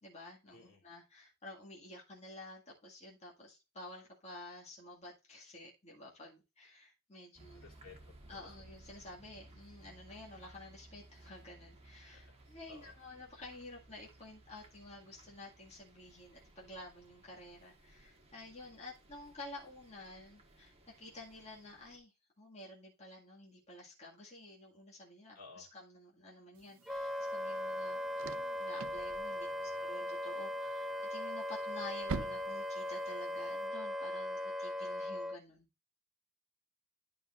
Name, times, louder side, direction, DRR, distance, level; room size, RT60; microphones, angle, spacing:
voice 1, 0.0-7.7 8.3-28.0 28.3-35.7, left 2 dB, 30° left, 2.0 m, -51 dB
sound 1, 7.4-22.0, right 1 dB, 25° right, 1.4 m, -60 dB
voice 2, 7.5-8.6 12.1-12.4 12.7-12.9 25.3-25.7 29.3-29.9, left 4 dB, 65° left, 3.1 m, -57 dB
sound 2, 26.5-33.7, right 4 dB, 60° right, 0.6 m, -48 dB
Wind instrument woodwind instrument, 26.9-35.4, left 1 dB, ahead, 0.4 m, -39 dB
11.0 x 5.4 x 2.5 m
head